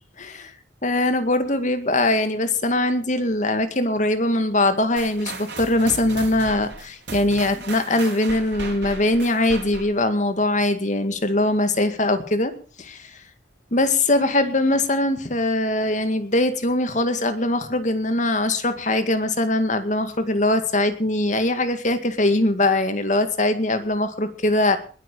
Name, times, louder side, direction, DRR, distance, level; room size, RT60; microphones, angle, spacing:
voice 1, 0.2-0.5 0.8-12.5 12.8-13.1 13.7-24.8, left 2 dB, 45° left, 9 dB, 2.1 m, -21 dB
sound 1, 5.0-10.0, right 3 dB, 70° right, 4.4 m, -36 dB
20.5 x 8.6 x 6.8 m, 0.42 s
head